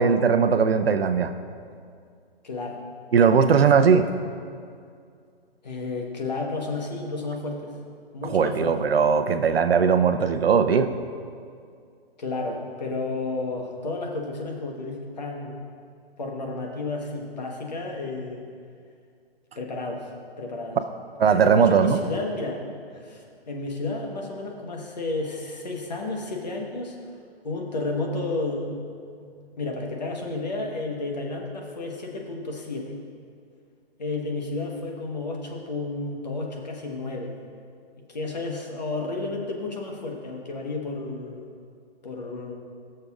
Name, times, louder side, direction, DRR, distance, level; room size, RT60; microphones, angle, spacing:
voice 1, 0.0-1.3 3.1-4.0 8.2-10.9 21.2-22.0, right 6 dB, 70° right, 9 dB, 0.6 m, -19 dB
voice 2, 2.4-2.8 3.7-3.8 5.6-7.7 8.1-8.9 12.2-15.6 16.2-18.4 19.6-20.1 20.4-20.8 21.5-22.6 22.9-27.0 27.4-28.8 29.2-29.3 29.6-33.0 34.0-37.3 38.1-41.5 42.0-42.6, left 3 dB, 45° left, 1 dB, 1.1 m, -32 dB
18.0 x 6.6 x 2.4 m, 2.3 s
hypercardioid pair, 180°, 31 cm